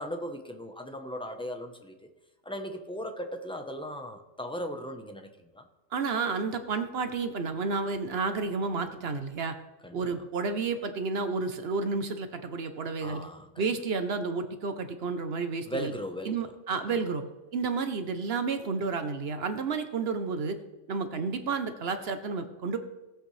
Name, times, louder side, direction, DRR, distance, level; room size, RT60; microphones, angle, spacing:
voice 1, 0.0-2.1 2.4-5.7 9.8-10.0 13.0-13.6 15.7-16.4 16.9-17.0, equal, 5° left, 5 dB, 0.7 m, -38 dB
voice 2, 5.9-9.5 9.9-13.2 13.6-15.9 16.2-17.2 17.5-20.6 20.9-22.8, right 4 dB, 55° right, 9 dB, 0.9 m, -31 dB
18.0 x 8.0 x 3.2 m, 1.1 s
omnidirectional pair, 1.3 m